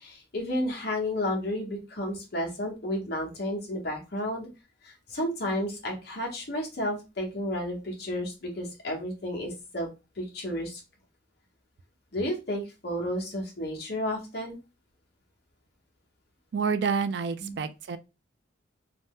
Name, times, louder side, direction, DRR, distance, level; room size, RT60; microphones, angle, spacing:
voice 1, 0.0-4.5 4.8-9.9 10.2-10.8 12.1-14.6 17.4-17.6, left 1 dB, 55° left, 0.9 m, -32 dB
voice 2, 16.5-18.0, right 5 dB, 60° right, 0.3 m, -28 dB
2.6 x 2.1 x 3.5 m
head